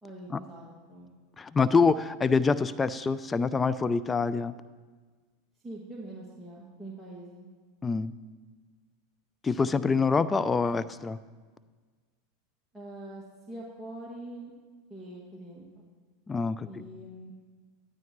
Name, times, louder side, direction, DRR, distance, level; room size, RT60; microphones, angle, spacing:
voice 1, 0.0-1.1 5.6-7.5 12.7-14.5 14.9-15.8 16.7-17.3, right 1 dB, 10° right, -5 dB, 2.1 m, -44 dB
voice 2, 1.4-4.5 7.8-8.1 9.4-11.2 16.3-16.8, left 4 dB, 20° left, 14 dB, 0.4 m, -26 dB
14.0 x 12.5 x 3.1 m, 1.4 s
hypercardioid pair, 95°, 0 cm